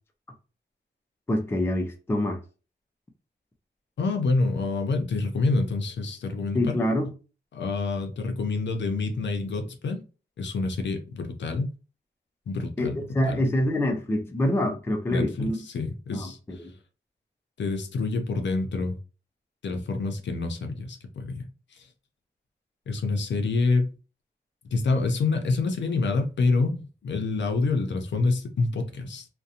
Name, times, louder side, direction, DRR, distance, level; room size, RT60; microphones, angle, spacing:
voice 1, 1.3-2.4 6.5-7.1 12.8-12.9 13.1-15.6 16.1-16.7, left 1 dB, 15° left, 0.3 m, -26 dB
voice 2, 4.0-6.8 7.5-10.0 10.4-11.7 12.5-13.0 13.2-13.4 15.1-16.7 17.6-19.0 19.6-21.9 22.9-23.9 24.7-29.3, left 3 dB, 70° left, 0.5 m, -27 dB
2.4 x 2.1 x 2.7 m
wide cardioid pair, 175°, 19 cm